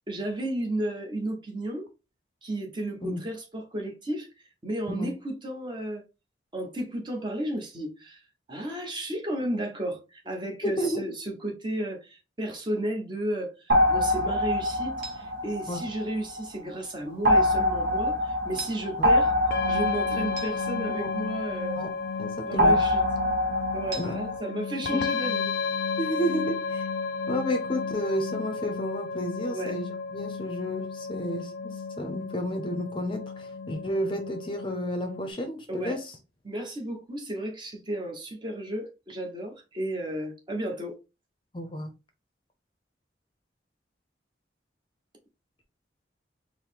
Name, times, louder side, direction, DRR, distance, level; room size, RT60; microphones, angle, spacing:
voice 1, 0.0-1.9 2.4-6.0 6.5-8.2 8.5-19.3 19.7-21.8 22.5-23.1 23.7-25.5 29.5-29.8 35.7-36.0 36.4-41.0, right 1 dB, 25° right, 0.9 m, -33 dB
voice 2, 10.6-11.0 15.7-15.8 19.0-19.1 20.9-21.1 21.8-21.9 22.2-22.8 24.0-24.1 24.8-25.0 26.0-26.9 27.3-36.2 41.5-41.9, equal, 30° left, 0.6 m, -31 dB
sound 1, 13.7-16.5 17.2-21.8 22.6-24.4, left 1 dB, 70° right, 1.0 m, -25 dB
sound 2, 19.5-35.3, left 5 dB, 65° left, 0.4 m, -33 dB
4.6 x 2.1 x 3.5 m
head